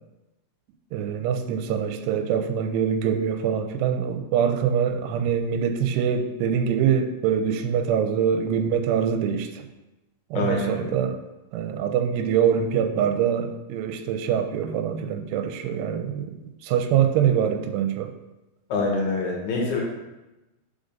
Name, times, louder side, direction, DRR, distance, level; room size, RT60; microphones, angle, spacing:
voice 1, 0.9-9.7 10.3-11.2 11.5-16.4 16.6-18.1, right 8 dB, 90° right, 8 dB, 2.7 m, -24 dB
voice 2, 10.3-10.9 18.7-19.8, left 3 dB, 65° left, -1 dB, 2.0 m, -25 dB
5.4 x 5.0 x 5.1 m, 1.0 s
omnidirectional pair, 4.7 m